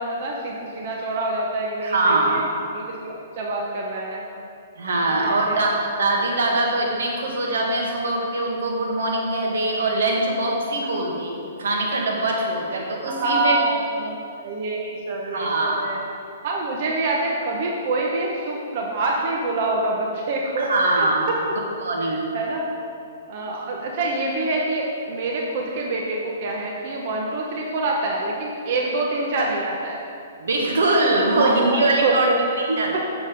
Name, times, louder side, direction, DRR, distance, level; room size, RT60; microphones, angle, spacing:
voice 1, 0.0-2.4 2.7-4.3 5.1-5.6 13.0-16.0 16.4-21.4 22.3-22.7 23.3-30.0 31.4-32.4 32.9-33.0, right 2 dB, 45° right, -1 dB, 0.9 m, -26 dB
voice 2, 1.8-2.4 4.8-13.5 15.2-15.8 20.6-21.3 21.8-22.2 30.4-33.0, right 2 dB, 85° right, -1 dB, 1.6 m, -22 dB
6.9 x 6.6 x 5.1 m, 2.5 s
hypercardioid pair, 165°, 0 cm